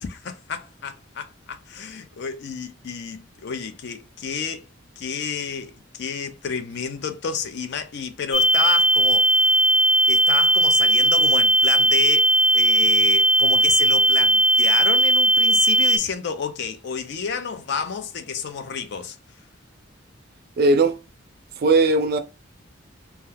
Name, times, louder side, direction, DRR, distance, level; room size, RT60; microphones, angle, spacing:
voice 1, 0.0-4.6 5.0-9.3 10.1-19.2, left 6 dB, 60° left, 0.4 m, -30 dB
sound 1, 8.3-16.0, right 1 dB, ahead, 0.5 m, -17 dB
voice 2, 20.6-21.0 21.6-22.2, right 3 dB, 50° right, 0.4 m, -18 dB
2.3 x 2.2 x 3.2 m
head